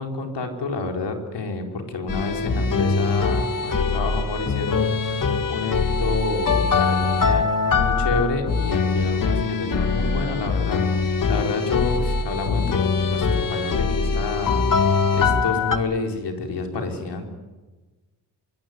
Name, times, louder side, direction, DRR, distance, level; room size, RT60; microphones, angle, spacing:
voice 1, 0.0-17.2, left 3 dB, 85° left, 3 dB, 4.9 m, -29 dB
sound 1, 2.1-15.8, left 4 dB, 50° left, 2.1 m, -22 dB
24.5 x 23.5 x 9.8 m, 1.2 s
wide cardioid pair, 105°, 40 cm